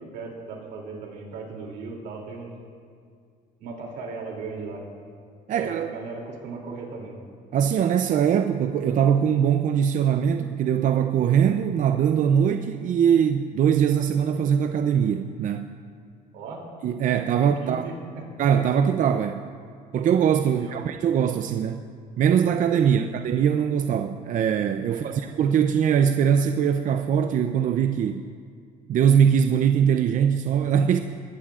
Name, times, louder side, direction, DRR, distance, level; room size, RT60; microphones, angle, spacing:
voice 1, 0.0-2.5 3.6-4.8 5.5-7.1 16.3-16.6 17.6-18.0 20.5-20.8 22.8-23.0 24.9-25.2, right 4 dB, 85° right, 0 dB, 2.8 m, -37 dB
voice 2, 5.5-5.9 7.5-15.7 16.8-17.9 18.4-19.4 19.9-21.8 22.2-28.2 28.9-31.0, right 8 dB, 50° right, 7 dB, 0.5 m, -22 dB
21.0 x 15.0 x 2.4 m, 2.2 s
cardioid pair, 110°, 17 cm